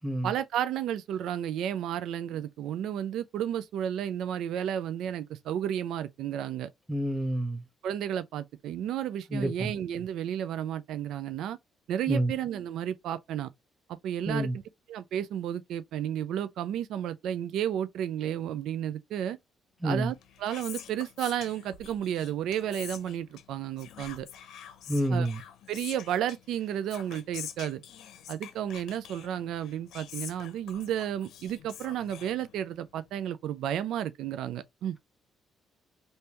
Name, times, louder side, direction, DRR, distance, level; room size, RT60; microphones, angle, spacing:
voice 1, 0.2-6.7 7.8-11.6 11.9-13.5 13.9-14.6 14.9-19.4 19.8-24.3 25.1-25.3 25.7-27.8 28.3-35.0, right 10 dB, 80° right, 0.4 m, -32 dB
voice 2, 6.9-7.6 9.3-9.7 12.1-12.3 14.3-14.6 19.8-20.1 24.9-25.4, right 1 dB, ahead, 0.9 m, -28 dB
Whispering, 20.1-32.9, left 9 dB, 85° left, 0.7 m, -46 dB
3.4 x 2.7 x 2.9 m
cardioid pair, 90°, 0 cm